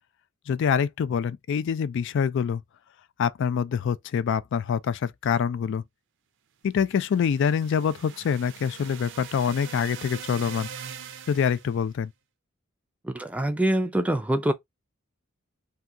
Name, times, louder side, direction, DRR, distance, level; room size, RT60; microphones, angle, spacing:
voice 1, 0.5-2.6 3.2-5.8 6.6-10.7 11.3-12.1, left 7 dB, 60° left, 0.3 m, -25 dB
sound 1, 6.8-11.8, right 7 dB, 60° right, 0.5 m, -42 dB
voice 2, 13.0-14.5, right 1 dB, 5° right, 0.4 m, -25 dB
2.7 x 2.3 x 3.6 m
head